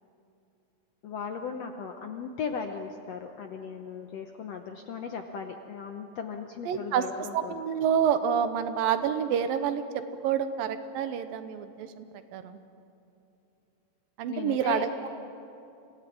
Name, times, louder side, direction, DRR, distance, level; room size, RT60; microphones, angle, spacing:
voice 1, 1.0-7.5 14.3-14.8, left 6 dB, 75° left, 5 dB, 1.5 m, -37 dB
voice 2, 6.7-7.0 7.3-12.1 12.3-12.6 14.2-15.1, right 8 dB, 80° right, 10 dB, 2.6 m, -28 dB
27.5 x 17.0 x 9.4 m, 2.8 s
omnidirectional pair, 4.2 m